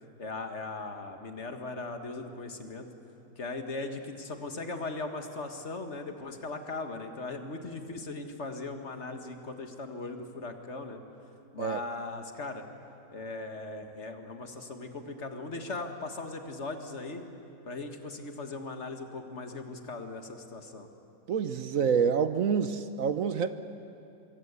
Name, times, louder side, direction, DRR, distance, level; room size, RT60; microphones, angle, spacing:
voice 1, 0.2-2.9 3.4-11.0 11.5-12.6 13.1-17.2 17.7-20.9, left 3 dB, 40° left, 6 dB, 1.9 m, -39 dB
voice 2, 21.3-23.5, right 6 dB, 55° right, 11 dB, 1.1 m, -27 dB
24.5 x 24.0 x 8.2 m, 2.7 s
omnidirectional pair, 1.9 m